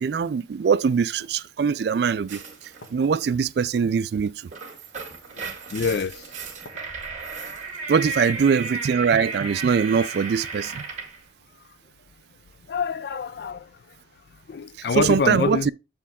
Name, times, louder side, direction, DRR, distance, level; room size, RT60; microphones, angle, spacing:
voice 1, 0.0-2.4 2.9-4.3 7.9-10.8 14.9-15.7, right 6 dB, 60° right, 0.3 m, -22 dB
sound 1, 1.2-1.3 2.2-2.3 2.8-3.1 4.4-4.5 5.2-5.6 6.0-6.1 6.6-6.8, left 1 dB, 85° left, 1.2 m, -47 dB
sound 2, 2.3-2.9 4.3-11.2, right 4 dB, 40° right, 2.0 m, -34 dB
voice 2, 5.7-6.3 12.7-14.0 14.5-15.7, left 5 dB, 60° left, 0.3 m, -26 dB
7.2 x 4.5 x 3.5 m
head